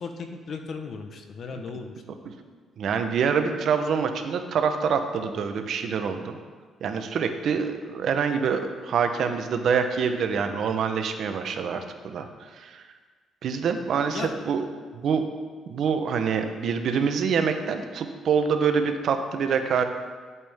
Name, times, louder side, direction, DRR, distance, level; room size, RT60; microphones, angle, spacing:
voice 1, 0.0-1.9 14.1-14.3, left 4 dB, 55° left, 6 dB, 1.1 m, -36 dB
voice 2, 2.8-6.4 6.8-12.8 13.4-14.6 15.0-15.2 15.7-19.8, right 6 dB, 65° right, 7 dB, 0.9 m, -26 dB
11.0 x 8.4 x 3.6 m, 1.5 s
cardioid pair, 90°, 0 cm